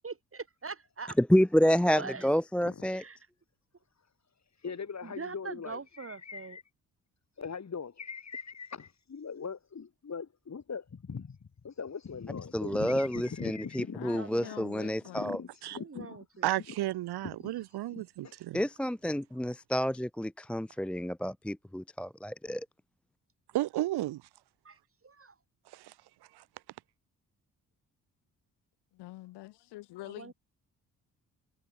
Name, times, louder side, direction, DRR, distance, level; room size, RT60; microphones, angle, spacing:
voice 1, 0.0-1.2 2.0-2.3 2.9-3.2 5.0-6.6 14.2-14.7 15.8-16.5 24.6-24.8 25.0-25.3 30.1-30.3, right 4 dB, 30° right, 3.0 m, -43 dB
voice 2, 1.2-3.0 12.5-15.4 18.5-22.7, equal, 5° left, 0.5 m, -29 dB
voice 3, 4.6-6.6 7.4-14.1 15.2-16.3 17.4-17.5 17.9-18.4, left 6 dB, 40° left, 3.6 m, -41 dB
voice 4, 13.9-15.4 28.9-30.3, left 18 dB, 75° left, 4.8 m, -46 dB
voice 5, 16.4-18.6 23.5-24.2 25.7-25.9 26.3-26.4, right 15 dB, 65° right, 1.5 m, -33 dB
hypercardioid pair, 40°, 41 cm